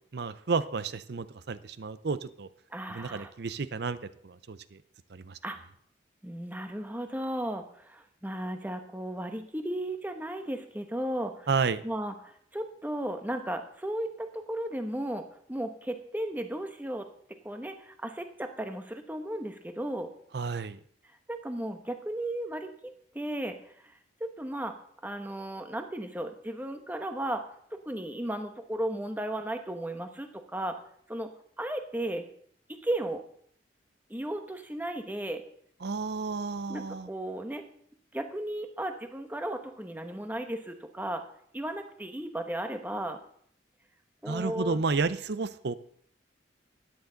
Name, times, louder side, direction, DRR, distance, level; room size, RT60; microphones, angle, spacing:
voice 1, 0.1-2.5 2.9-4.0 4.2-4.8 5.1-5.4 11.5-11.8 20.3-20.8 35.8-37.1 44.3-45.7, right 4 dB, 60° right, 15 dB, 0.6 m, -31 dB
voice 2, 2.7-3.3 5.4-5.6 6.2-11.5 11.8-17.1 17.4-20.1 21.3-23.7 24.2-24.7 25.0-27.4 27.7-30.8 31.1-31.3 31.6-32.2 32.8-33.2 34.1-35.4 36.7-37.6 38.1-41.2 41.5-43.2 44.2-44.8, right 1 dB, 10° right, 6 dB, 1.0 m, -35 dB
12.5 x 9.5 x 3.9 m, 0.64 s
head